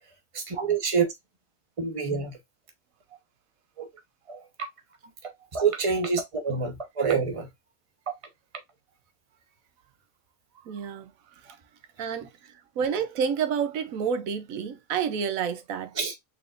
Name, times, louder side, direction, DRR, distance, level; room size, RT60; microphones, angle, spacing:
voice 1, 0.3-1.1 1.8-2.4 3.8-3.9 4.3-4.5 5.2-7.5 16.0-16.1, right 5 dB, 25° right, 1.0 m, -27 dB
voice 2, 10.7-11.1 12.0-15.9, right 7 dB, 85° right, 1.1 m, -29 dB
4.6 x 3.8 x 2.4 m
omnidirectional pair, 1.4 m